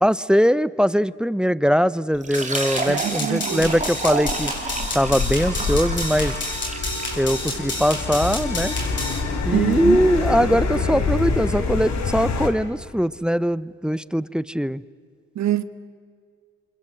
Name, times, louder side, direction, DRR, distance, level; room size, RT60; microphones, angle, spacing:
voice 1, 0.0-4.5 4.9-6.4 7.2-8.8 9.4-14.8, equal, 5° right, 0.6 m, -21 dB
Fill (with liquid), 2.1-7.3, right 3 dB, 25° right, 3.1 m, -31 dB
sound 1, 2.3-9.2, left 2 dB, 35° left, 7.6 m, -30 dB
voice 2, 2.9-3.7 9.5-10.0 15.3-15.6, right 11 dB, 65° right, 1.2 m, -24 dB
sound 2, 3.6-12.5, left 3 dB, 65° left, 3.5 m, -27 dB
27.5 x 27.0 x 7.9 m
cardioid pair, 90°, 30 cm